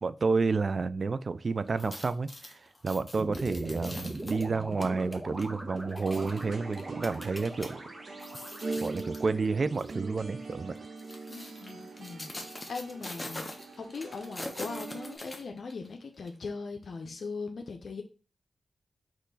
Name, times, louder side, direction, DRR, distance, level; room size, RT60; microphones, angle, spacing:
voice 1, 0.0-7.8 8.8-10.7, right 4 dB, 60° right, 0.3 m, -30 dB
sound 1, 1.7-7.7 8.1-9.3 9.7-9.9 10.7-15.9 16.3-16.4, left 1 dB, 20° left, 1.0 m, -44 dB
sound 2, 3.2-11.5, right 1 dB, 30° right, 1.4 m, -42 dB
sound 3, 6.0-15.2, right 3 dB, 75° right, 0.8 m, -42 dB
voice 2, 11.3-18.0, left 4 dB, 75° left, 0.6 m, -40 dB
4.4 x 3.1 x 4.0 m
cardioid pair, 55°, 0 cm